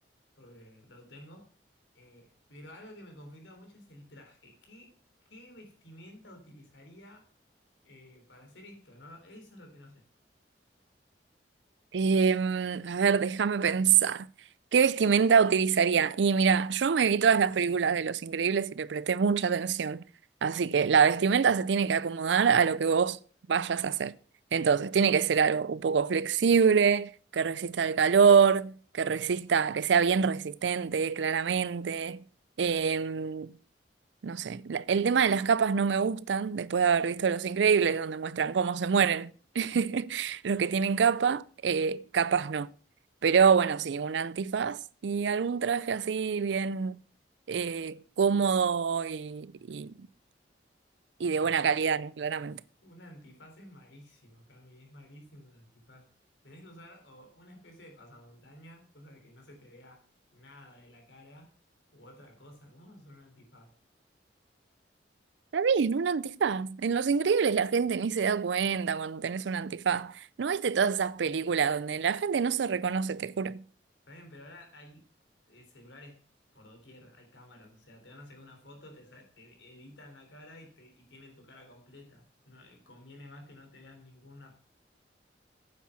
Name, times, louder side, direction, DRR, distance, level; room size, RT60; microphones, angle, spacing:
voice 1, 0.4-1.5 1.9-4.9 5.3-7.3 7.8-10.0 51.4-51.6 52.4-52.5 52.8-56.1 56.4-60.0 60.3-61.5 61.9-63.7 74.1-75.0 75.5-76.2 76.5-84.5, left 1 dB, 90° left, 3.5 m, -52 dB
voice 2, 11.9-14.3 14.7-20.0 20.4-23.2 23.5-24.1 24.5-32.2 32.6-33.5 34.2-42.7 43.2-47.0 47.5-50.0 51.2-52.6 65.5-73.6, right 6 dB, 75° right, 0.4 m, -26 dB
9.2 x 7.6 x 5.8 m
head